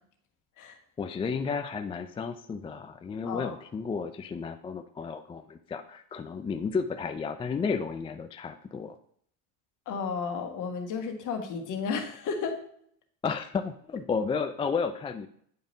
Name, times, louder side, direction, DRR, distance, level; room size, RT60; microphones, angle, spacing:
voice 1, 1.0-9.0 13.2-15.3, left 5 dB, 15° left, 7 dB, 0.3 m, -32 dB
voice 2, 9.9-12.6, left 5 dB, 50° left, 4 dB, 1.6 m, -33 dB
9.4 x 5.1 x 2.7 m, 0.63 s
supercardioid pair, 95°, 39 cm